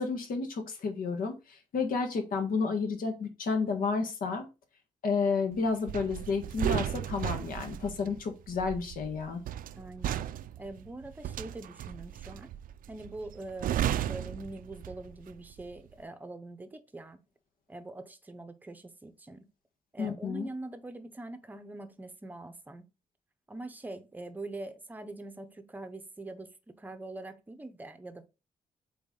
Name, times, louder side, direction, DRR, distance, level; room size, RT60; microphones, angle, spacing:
voice 1, 0.0-4.5 5.0-9.4 20.0-20.5, left 4 dB, 85° left, 1.6 m, -31 dB
sound 1, 5.9-15.2 15.5-15.8, right 11 dB, 80° right, 0.4 m, -35 dB
voice 2, 9.8-10.3 10.6-12.5 12.9-17.2 17.7-19.5 19.9-22.8 23.5-28.3, right 2 dB, 10° right, 0.7 m, -43 dB
8.0 x 3.5 x 3.7 m
wide cardioid pair, 175°, 14 cm